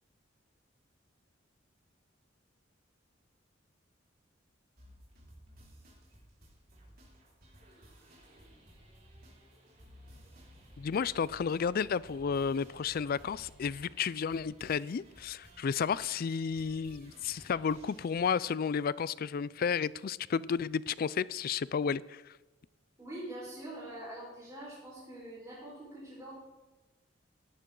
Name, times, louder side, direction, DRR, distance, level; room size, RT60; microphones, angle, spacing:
sound 1, 4.8-18.4, equal, 50° right, 4.7 m, -57 dB
voice 1, 10.8-22.3, left 6 dB, 50° left, 20 dB, 0.4 m, -32 dB
voice 2, 23.0-26.3, right 1 dB, 15° right, -8 dB, 4.6 m, -44 dB
17.5 x 11.0 x 3.9 m, 1.1 s
head